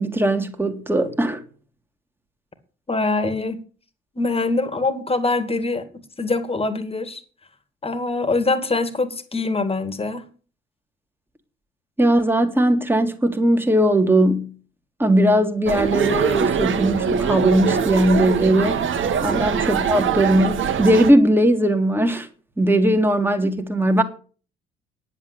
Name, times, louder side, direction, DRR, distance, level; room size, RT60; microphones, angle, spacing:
voice 1, 0.0-1.4 12.0-14.5 15.0-18.8 19.2-22.3 22.6-24.0, right 1 dB, 5° right, 2.2 m, -19 dB
voice 2, 2.9-3.6 4.1-5.9 6.2-7.2 7.8-10.2 19.3-19.4, left 3 dB, 20° left, 2.3 m, -23 dB
sound 1, 15.7-21.1, right 7 dB, 40° right, 1.6 m, -23 dB
10.0 x 8.4 x 8.4 m
figure-of-eight pair, 55°, 30 cm